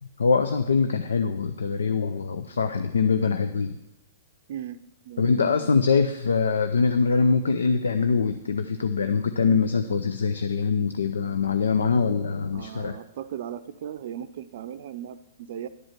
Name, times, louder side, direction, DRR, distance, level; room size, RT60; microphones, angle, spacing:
voice 1, 0.2-3.8 5.2-13.0, left 5 dB, 85° left, 9 dB, 0.6 m, -23 dB
voice 2, 4.5-4.8 5.0-5.9 12.5-15.7, right 9 dB, 60° right, 11 dB, 0.5 m, -37 dB
11.0 x 5.1 x 7.3 m, 0.96 s
hypercardioid pair, 130°, 0 cm